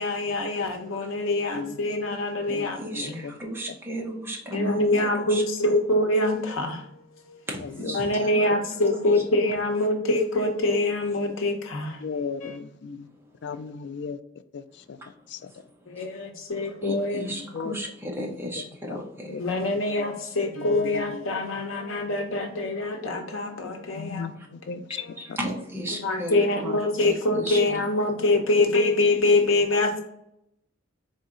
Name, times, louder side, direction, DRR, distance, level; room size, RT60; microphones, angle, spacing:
voice 1, 0.0-3.1 4.5-6.9 7.3-7.4 7.9-12.0 12.4-12.5 15.9-17.3 19.4-24.3 26.0-30.0, left 2 dB, 80° left, 2 dB, 0.9 m, -25 dB
voice 2, 1.5-1.9 2.5-3.4 7.6-8.0 12.0-13.1 13.4-14.2 14.5-15.5 17.3-17.8 18.2-18.4 18.9-19.0 19.3-19.4 20.0-20.1 20.6-21.2 24.0-25.0 25.3-25.4 27.7-27.9 28.7-28.8, left 5 dB, 60° left, 12 dB, 0.3 m, -36 dB
voice 3, 2.5-5.4 7.5-8.3 8.9-9.1 15.1-15.3 15.9-16.2 16.8-19.3 24.9-27.6, equal, 10° right, -1 dB, 0.8 m, -34 dB
4.2 x 2.7 x 3.7 m, 0.77 s
head